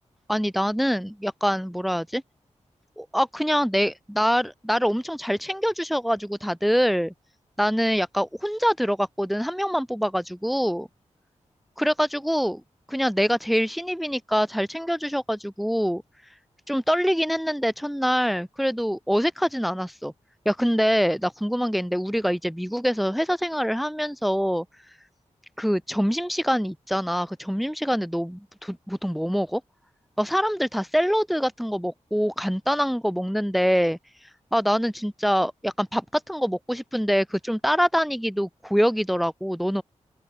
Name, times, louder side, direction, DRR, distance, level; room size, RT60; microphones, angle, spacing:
voice 1, 0.3-2.2 3.0-7.1 7.6-10.9 11.8-12.6 12.9-16.0 16.7-20.1 20.4-24.6 25.6-29.6 30.2-39.8, equal, ahead, 1.3 m, -25 dB
open air
wide cardioid pair, 115°, 12 cm